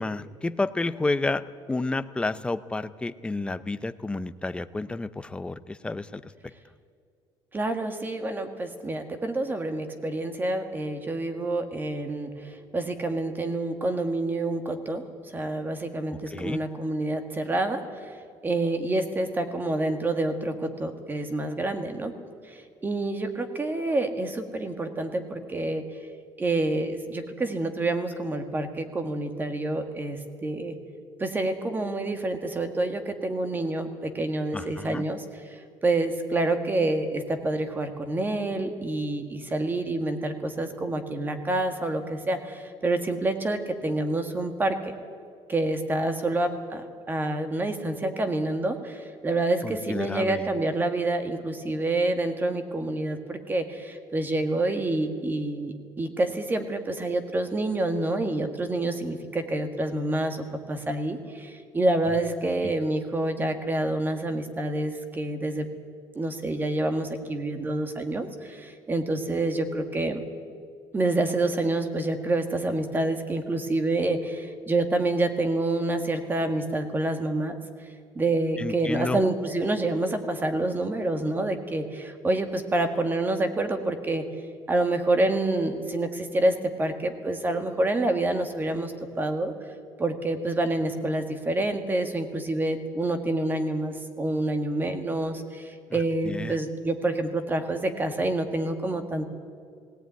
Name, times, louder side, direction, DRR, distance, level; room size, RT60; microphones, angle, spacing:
voice 1, 0.0-6.3 16.3-16.6 34.5-35.0 49.6-50.5 62.6-62.7 78.6-79.2 95.9-96.6, left 2 dB, 10° left, 12 dB, 0.6 m, -30 dB
voice 2, 7.5-12.3 12.7-15.0 15.3-17.8 18.4-22.1 22.8-25.8 26.4-30.8 31.2-35.2 35.8-44.9 45.5-65.7 66.1-70.2 70.9-77.5 78.1-84.2 84.7-89.5 90.0-99.2, right 2 dB, 20° right, 7 dB, 1.7 m, -27 dB
18.0 x 17.5 x 9.3 m, 2.1 s
cardioid pair, 150°, 10 cm